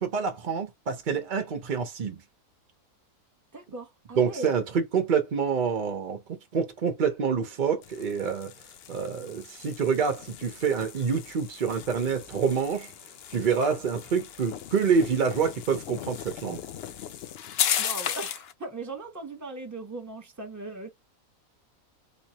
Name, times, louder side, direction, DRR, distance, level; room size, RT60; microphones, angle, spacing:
voice 1, 0.0-2.2 4.2-6.2 6.5-8.5 8.9-12.9 13.3-16.6, right 6 dB, 55° right, 0.5 m, -27 dB
voice 2, 3.5-4.6 17.8-20.9, right 2 dB, 15° right, 0.8 m, -38 dB
sound 1, 7.8-18.5, left 9 dB, 70° left, 0.6 m, -36 dB
3.3 x 3.1 x 2.8 m
omnidirectional pair, 1.6 m